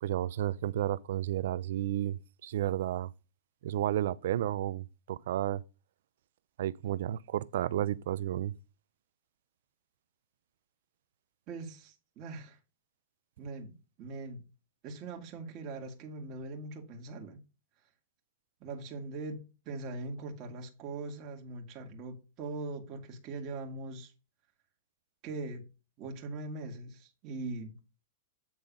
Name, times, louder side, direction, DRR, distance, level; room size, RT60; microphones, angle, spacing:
voice 1, 0.0-3.1 3.6-5.6 6.6-8.5, right 12 dB, 70° right, 0.5 m, -32 dB
voice 2, 11.5-12.6 13.4-14.4 14.8-17.4 18.6-24.1 25.2-25.6 26.0-27.7, right 3 dB, 35° right, 2.1 m, -41 dB
8.7 x 3.9 x 5.3 m
supercardioid pair, 140°, 0 cm